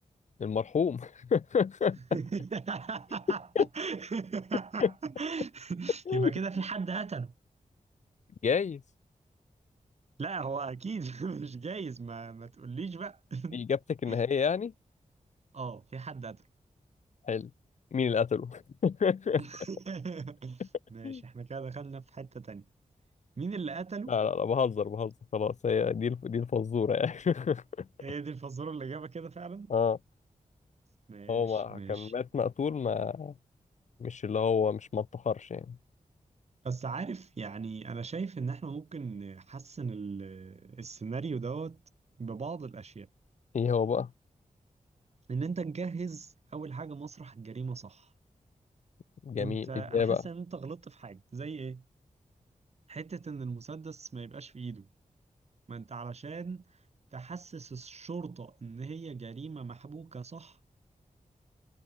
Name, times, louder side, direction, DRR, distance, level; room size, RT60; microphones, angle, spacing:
voice 1, 0.4-2.0 3.6-3.7 4.8-4.9 6.1-6.3 8.4-8.8 13.5-14.7 17.2-17.5 17.9-19.4 21.0-21.2 24.1-27.9 29.7-30.0 31.3-33.3 34.0-35.8 43.5-44.1 49.3-50.2, left 6 dB, 60° left, 0.8 m, -29 dB
voice 2, 2.1-7.3 10.2-13.6 14.1-14.2 15.5-16.4 19.4-20.6 20.9-22.7 23.4-24.1 28.0-29.7 31.1-32.1 36.6-41.8 42.2-43.1 45.3-48.1 49.3-51.8 52.9-54.9 55.7-56.6 57.1-60.6, right 4 dB, 55° right, 3.4 m, -38 dB
wide cardioid pair, 115°, 13 cm